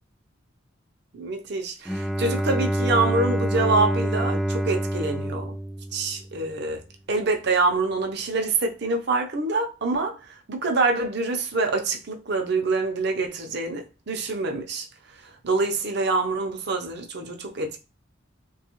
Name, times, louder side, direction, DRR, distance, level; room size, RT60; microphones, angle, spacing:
voice 1, 1.1-5.5 5.9-6.8 7.1-10.2 10.5-14.9 15.4-17.8, right 3 dB, 55° right, 0.6 m, -25 dB
Bowed string instrument, 1.8-6.5, right 1 dB, ahead, 0.3 m, -27 dB
3.3 x 2.3 x 2.9 m
head